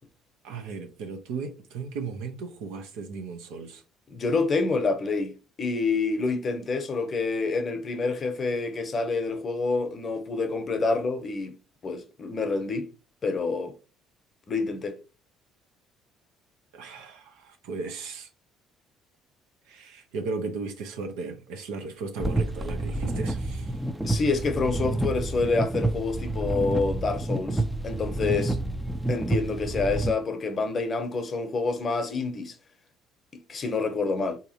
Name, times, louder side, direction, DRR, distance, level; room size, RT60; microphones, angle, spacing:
voice 1, 0.4-3.8 16.7-18.3 19.7-23.8, right 4 dB, 80° right, 0.8 m, -36 dB
voice 2, 4.1-11.5 11.8-12.9 13.2-13.7 14.5-15.0 24.0-28.6 29.1-32.5 33.5-34.4, left 3 dB, 40° left, 0.7 m, -27 dB
sound 1, 22.2-30.1, right 2 dB, 5° right, 0.4 m, -29 dB
3.7 x 2.8 x 2.8 m
supercardioid pair, 80°, 0 cm